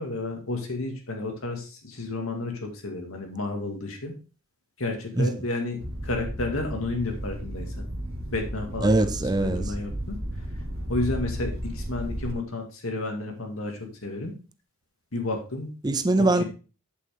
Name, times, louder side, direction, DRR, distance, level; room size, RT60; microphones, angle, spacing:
voice 1, 0.0-4.1 4.8-7.9 8.3-9.1 9.4-10.2 10.9-14.3 15.1-15.7 16.2-16.4, left 2 dB, 80° left, 2.2 m, -31 dB
sound 1, 5.8-12.3, equal, 75° right, 1.7 m, -34 dB
voice 2, 8.8-9.7 15.8-16.4, right 2 dB, 20° right, 0.5 m, -22 dB
8.4 x 7.3 x 3.5 m
head